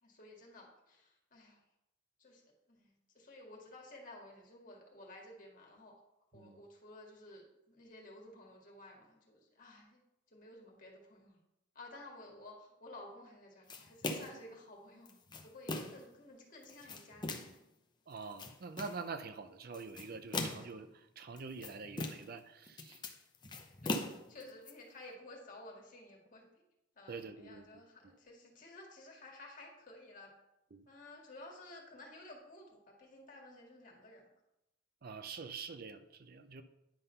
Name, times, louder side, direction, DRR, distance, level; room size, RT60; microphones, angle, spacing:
voice 1, 0.0-1.6 2.2-2.4 2.7-5.9 6.3-10.0 10.3-11.4 11.8-17.5 23.8-26.5 27.0-30.3 30.9-34.3, left 2 dB, 45° left, 0 dB, 1.9 m, -54 dB
sound 1, 13.7-14.5 15.1-16.1 16.6-17.6 18.2-19.0 19.7-20.8 21.4-22.4 22.7-24.7, left 2 dB, 25° left, 0.7 m, -40 dB
voice 2, 18.1-23.0 27.1-27.7 30.7-30.8 35.0-36.6, right 4 dB, 50° right, 9 dB, 0.5 m, -46 dB
9.9 x 3.8 x 5.5 m, 0.87 s
head